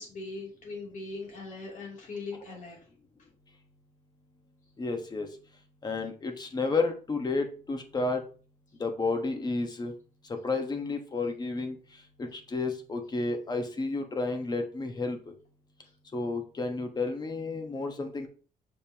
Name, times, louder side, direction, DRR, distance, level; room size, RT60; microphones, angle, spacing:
voice 1, 0.0-2.8, left 3 dB, 60° left, -2 dB, 3.0 m, -40 dB
voice 2, 4.8-5.3 5.8-8.2 8.8-9.9 10.3-11.8 12.2-15.2 16.1-18.3, left 3 dB, 30° left, 5 dB, 1.2 m, -31 dB
6.7 x 5.3 x 2.9 m, 0.38 s
cardioid pair, 140°, 15 cm